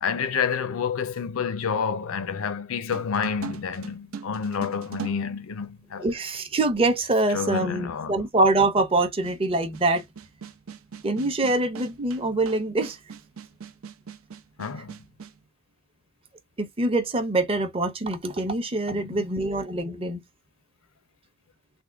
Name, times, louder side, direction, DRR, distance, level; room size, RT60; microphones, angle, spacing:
voice 1, 0.0-6.1 7.3-8.3 14.6-15.0 18.9-19.4, left 6 dB, 80° left, 0.5 m, -29 dB
sound 1, 2.9-6.1 7.0-7.1 9.2-15.4, right 6 dB, 80° right, 0.6 m, -41 dB
voice 2, 6.0-10.0 11.0-13.0 16.6-20.2, right 2 dB, 25° right, 0.6 m, -24 dB
3.5 x 2.2 x 3.4 m
head